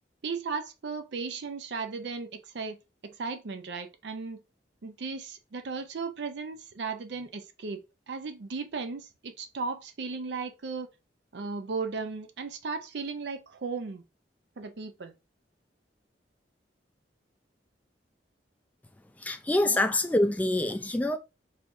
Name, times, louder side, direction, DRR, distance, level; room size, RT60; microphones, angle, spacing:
voice 1, 0.2-2.8 3.0-4.4 4.8-10.9 11.3-14.0 14.6-15.1 19.6-19.8, right 4 dB, 70° right, 0.5 m, -36 dB
voice 2, 19.2-21.2, left 1 dB, 10° left, 0.3 m, -26 dB
4.0 x 3.0 x 2.6 m
head